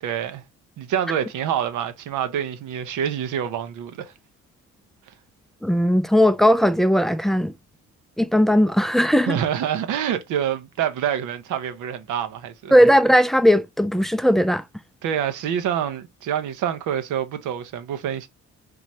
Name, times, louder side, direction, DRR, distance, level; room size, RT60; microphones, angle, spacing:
voice 1, 0.0-0.4 0.8-4.1 9.2-12.7 15.0-18.3, right 9 dB, 80° right, 0.8 m, -26 dB
voice 2, 5.6-7.5 8.2-9.4 12.7-14.6, equal, ahead, 0.3 m, -18 dB
3.8 x 3.0 x 2.7 m
cardioid pair, 90°, 30 cm